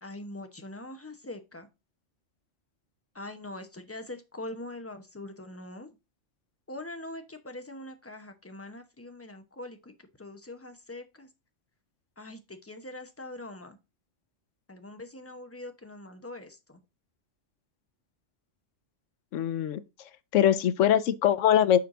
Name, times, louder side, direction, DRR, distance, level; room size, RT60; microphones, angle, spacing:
voice 1, 0.0-1.7 3.1-5.9 6.7-11.3 12.2-13.8 14.7-16.8, left 2 dB, 15° left, 0.7 m, -43 dB
voice 2, 19.3-19.8 20.3-21.8, left 10 dB, 85° left, 1.0 m, -22 dB
6.8 x 4.6 x 3.6 m
omnidirectional pair, 1.2 m